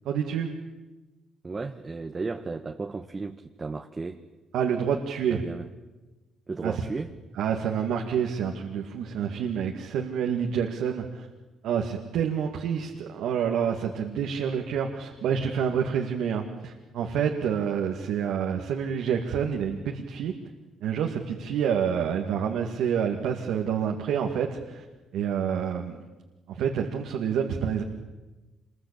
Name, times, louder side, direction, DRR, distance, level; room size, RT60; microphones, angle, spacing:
voice 1, 0.1-0.5 4.5-5.4 6.6-6.8 7.4-11.3 11.6-20.3 20.8-24.8 25.1-26.0 26.5-27.8, right 7 dB, 85° right, 2 dB, 2.1 m, -28 dB
voice 2, 1.4-4.2 5.3-5.7 6.5-7.1, right 3 dB, 30° right, 5 dB, 1.4 m, -34 dB
26.5 x 22.0 x 8.7 m, 1.2 s
cardioid pair, 90°, 0 cm